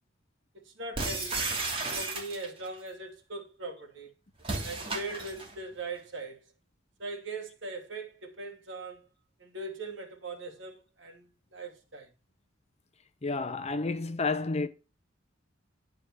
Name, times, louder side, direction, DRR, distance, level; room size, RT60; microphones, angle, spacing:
voice 1, 0.5-1.4 1.9-4.1 4.6-6.5 7.0-9.1 9.4-12.1, right 2 dB, 75° right, 3.0 m, -40 dB
sound 1, 1.0-2.7 4.4-5.6, right 3 dB, 30° right, 2.9 m, -33 dB
voice 2, 13.2-14.7, left 3 dB, 35° left, 0.8 m, -30 dB
10.5 x 4.8 x 6.0 m
head